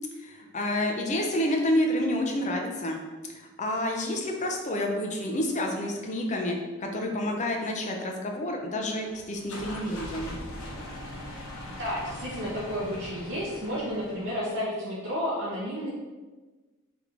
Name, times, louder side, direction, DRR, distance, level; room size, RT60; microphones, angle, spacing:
voice 1, 0.2-3.0 3.3-10.3, left 1 dB, 35° left, 1 dB, 0.6 m, -29 dB
sound 1, 9.0-14.6, left 1 dB, 85° left, 0.7 m, -41 dB
voice 2, 11.7-15.9, equal, 60° right, -7 dB, 0.8 m, -31 dB
3.6 x 3.5 x 3.4 m, 1.3 s
head